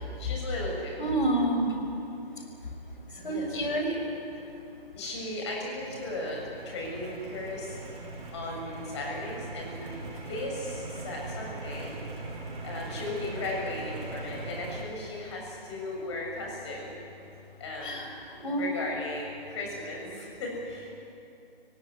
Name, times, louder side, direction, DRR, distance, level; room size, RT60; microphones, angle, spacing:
voice 1, 0.2-1.0 3.2-3.5 5.0-7.8 8.3-12.0 12.6-16.9 17.6-18.1 18.5-20.9, left 2 dB, 30° left, -1 dB, 7.1 m, -36 dB
voice 2, 1.0-1.7 3.2-3.9 17.8-18.1 18.4-18.6, right 1 dB, 55° left, 4 dB, 6.3 m, -28 dB
sound 1, 5.8-14.8, right 3 dB, 40° right, 6.9 m, -40 dB
30.0 x 17.5 x 9.9 m, 2.7 s
figure-of-eight pair, 150°, 30 cm